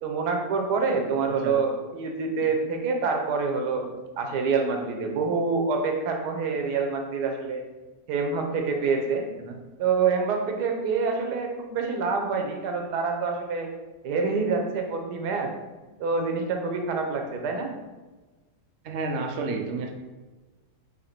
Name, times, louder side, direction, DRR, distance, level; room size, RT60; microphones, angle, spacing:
voice 1, 0.0-3.8 4.2-7.6 8.1-9.3 9.8-13.7 14.0-15.5 16.0-17.7, right 4 dB, 90° right, 3 dB, 1.3 m, -26 dB
voice 2, 1.2-1.6 9.4-9.5 18.8-19.9, right 3 dB, 60° right, 2 dB, 0.8 m, -31 dB
4.1 x 2.9 x 4.2 m, 1.2 s
omnidirectional pair, 1.7 m